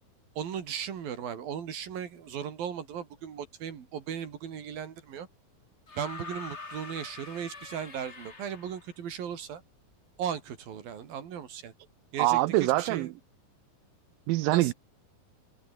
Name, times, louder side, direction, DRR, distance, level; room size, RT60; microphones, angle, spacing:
voice 1, 0.4-5.3 6.0-9.6 10.2-11.7 12.1-13.1 14.5-14.7, right 8 dB, 65° right, 4.5 m, -37 dB
sound 1, 5.9-8.9 10.2-10.3, left 3 dB, 20° left, 2.0 m, -44 dB
voice 2, 12.2-13.1 14.3-14.7, right 18 dB, 85° right, 2.2 m, -24 dB
omnidirectional pair, 4.5 m